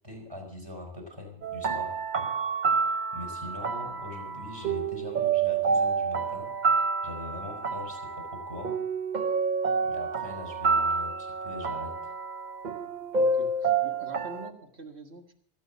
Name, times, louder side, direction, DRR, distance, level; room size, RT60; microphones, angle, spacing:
voice 1, 0.0-2.0 3.1-6.5 7.0-8.8 9.8-12.1, left 2 dB, 25° right, 2 dB, 4.8 m, -41 dB
sound 1, 1.4-14.5, right 4 dB, 50° right, 0.9 m, -28 dB
voice 2, 13.1-15.3, right 3 dB, 85° right, 4 dB, 1.9 m, -45 dB
27.0 x 9.3 x 4.1 m, 0.63 s
omnidirectional pair, 1.1 m